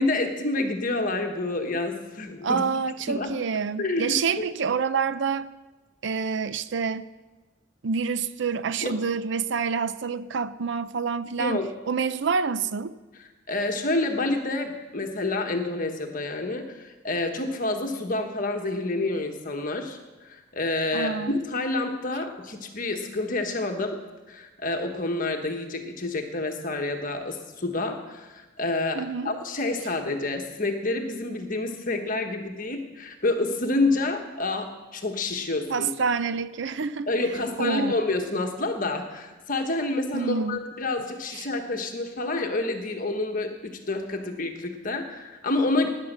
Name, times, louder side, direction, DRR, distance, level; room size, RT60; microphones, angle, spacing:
voice 1, 0.0-2.6 3.1-3.4 3.8-4.5 8.8-9.0 11.4-11.7 13.5-24.0 24.3-35.9 37.1-45.9, left 2 dB, 45° left, 1.3 m, -28 dB
voice 2, 2.4-5.5 6.0-7.0 7.8-11.6 11.9-12.9 20.9-21.4 28.9-29.3 35.7-37.1 37.6-37.9 40.1-40.6 41.3-41.5, right 5 dB, 65° right, 0.5 m, -27 dB
18.0 x 9.9 x 6.7 m
head